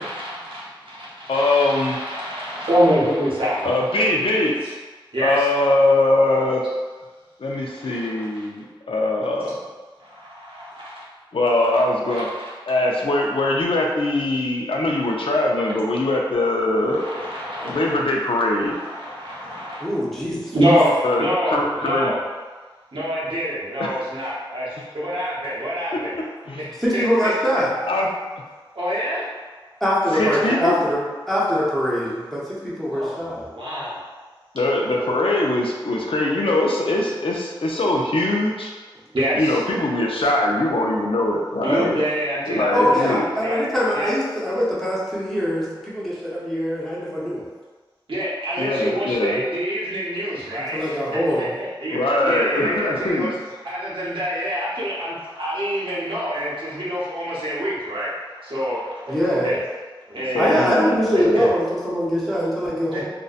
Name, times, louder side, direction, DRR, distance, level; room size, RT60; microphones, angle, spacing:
voice 1, 0.0-4.1 5.1-5.6 7.8-8.5 10.0-11.0 12.1-12.5 15.0-15.1 16.9-18.0 18.5-19.9 20.5-22.2 22.9-26.1 26.6-27.3 28.7-29.3 30.1-30.7 32.9-34.1 39.1-39.6 41.6-43.6 43.9-44.1 48.1-53.3 53.6-58.1 58.4-59.1 59.4-59.6 60.1-60.7 61.1-61.5 62.9-63.0, equal, 80° right, -8 dB, 0.7 m, -26 dB
voice 2, 1.3-2.0 3.6-4.6 5.2-6.7 7.4-9.7 11.3-12.3 12.7-17.0 17.6-18.8 21.0-22.1 23.8-24.0 25.9-26.6 27.9-28.1 30.2-30.8 34.5-38.7 39.3-42.0 42.5-43.2 48.6-49.4 51.9-53.3 60.3-61.4, left 2 dB, 80° left, -1 dB, 0.4 m, -22 dB
voice 3, 19.8-20.8 26.8-27.7 29.8-31.0 31.3-33.5 42.7-47.4 50.7-51.6 59.1-59.5 60.3-63.0, equal, 5° left, -8 dB, 0.8 m, -23 dB
2.6 x 2.1 x 2.3 m, 1.3 s
wide cardioid pair, 60°, 9 cm